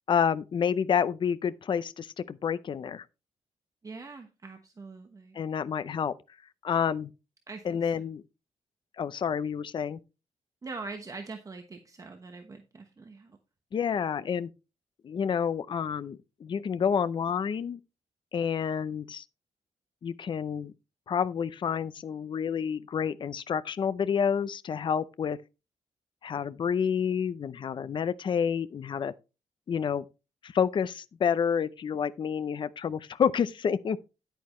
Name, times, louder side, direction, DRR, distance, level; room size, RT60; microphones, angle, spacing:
voice 1, 0.1-3.0 5.3-6.1 6.6-7.1 7.6-8.2 9.0-10.0 13.7-14.5 15.0-17.8 18.3-19.2 20.0-20.7 21.1-25.4 26.2-29.1 29.7-30.0 30.4-34.0, left 7 dB, 40° left, 0.5 m, -29 dB
voice 2, 3.8-5.4 7.5-7.9 10.6-13.4, right 3 dB, 30° right, 1.1 m, -43 dB
10.5 x 9.1 x 3.1 m
wide cardioid pair, 165°, 12 cm